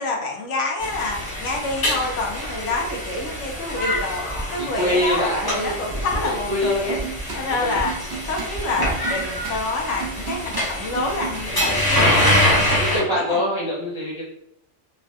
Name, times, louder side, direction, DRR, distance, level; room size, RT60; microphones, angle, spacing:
voice 1, 0.0-7.0 7.3-8.0 8.3-13.4, left 2 dB, 70° left, 0 dB, 0.9 m, -27 dB
sound 1, 0.8-13.0, left 1 dB, 20° left, 0.6 m, -25 dB
voice 2, 4.6-7.1 7.5-7.8 12.7-14.2, left 1 dB, 35° right, -7 dB, 0.5 m, -25 dB
sound 2, 6.6-7.4 7.7-11.7, right 6 dB, 55° right, 0.9 m, -34 dB
3.1 x 2.2 x 2.6 m, 0.75 s
omnidirectional pair, 1.4 m